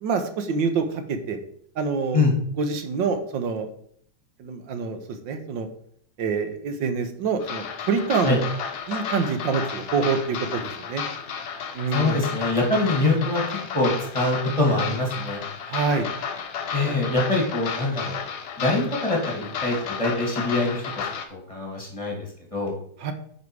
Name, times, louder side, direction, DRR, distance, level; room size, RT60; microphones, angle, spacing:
voice 1, 0.0-1.4 1.8-2.2 2.6-3.7 4.4-5.7 6.2-8.4 8.9-10.6 10.9-11.0 11.7-12.2 15.7-16.1 16.8-16.9 23.0-23.1, right 5 dB, 70° right, 8 dB, 1.6 m, -26 dB
sound 1, 7.4-21.3, left 6 dB, 60° left, 1.4 m, -32 dB
voice 2, 11.9-13.4 13.7-15.4 16.7-18.2 18.6-22.3 22.5-22.7, left 2 dB, 15° left, -1 dB, 2.2 m, -24 dB
9.9 x 5.3 x 4.8 m, 0.62 s
omnidirectional pair, 2.2 m